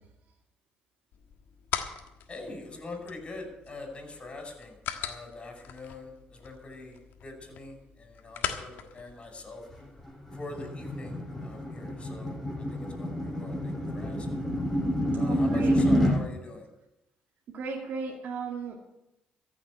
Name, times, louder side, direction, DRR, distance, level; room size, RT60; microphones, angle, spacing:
sound 1, 1.1-10.0, left 9 dB, 75° left, 1.4 m, -41 dB
voice 1, 2.3-9.6 10.3-14.3 15.1-16.7, left 2 dB, 35° left, 4 dB, 5.7 m, -44 dB
sound 2, 9.7-16.2, equal, 5° left, 6.7 m, -28 dB
voice 2, 15.1-15.9 17.5-18.8, right 5 dB, 65° right, 0 dB, 2.1 m, -36 dB
14.5 x 7.2 x 9.6 m, 0.90 s
cardioid pair, 80°, 3 cm